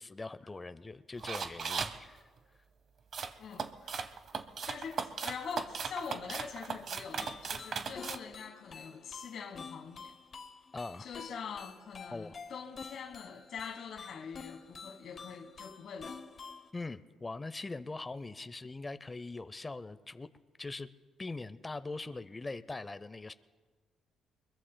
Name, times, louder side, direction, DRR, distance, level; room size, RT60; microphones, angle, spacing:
voice 1, 0.0-2.2 10.7-11.1 12.1-12.4 16.7-20.3 20.6-20.9 21.2-23.3, left 3 dB, 20° left, 0.6 m, -42 dB
sound 1, 1.2-2.0 3.1-8.2, right 6 dB, 55° right, 0.9 m, -37 dB
voice 2, 3.4-3.9 4.7-10.1 11.0-16.2, left 6 dB, 65° left, 1.4 m, -44 dB
sound 2, 7.1-16.7, left 5 dB, 45° left, 0.9 m, -49 dB
24.0 x 21.5 x 2.2 m
cardioid pair, 90°, 0 cm